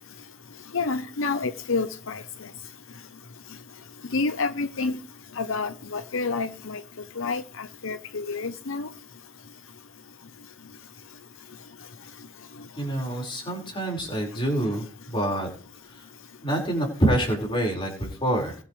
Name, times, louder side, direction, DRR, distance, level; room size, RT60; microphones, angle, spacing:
voice 1, 0.7-2.2 4.1-5.0 5.4-6.8 7.2-8.9, left 4 dB, 75° left, 0.8 m, -28 dB
voice 2, 12.8-15.5 16.4-18.6, right 1 dB, 25° left, 5.1 m, -26 dB
21.5 x 9.0 x 3.3 m
head